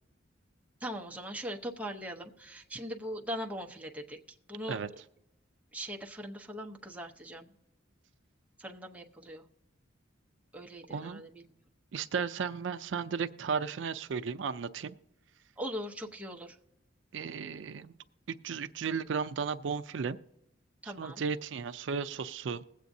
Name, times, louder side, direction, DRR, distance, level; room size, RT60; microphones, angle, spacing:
voice 1, 0.8-4.8 5.7-7.5 8.6-9.4 10.5-11.4 15.6-16.6 20.8-21.2, equal, 5° right, 1 dB, 0.8 m, -40 dB
voice 2, 10.9-11.2 11.9-14.9 17.1-17.9 18.3-20.2 21.0-22.6, right 6 dB, 65° right, 10 dB, 0.4 m, -34 dB
21.0 x 8.2 x 2.7 m, 0.93 s
head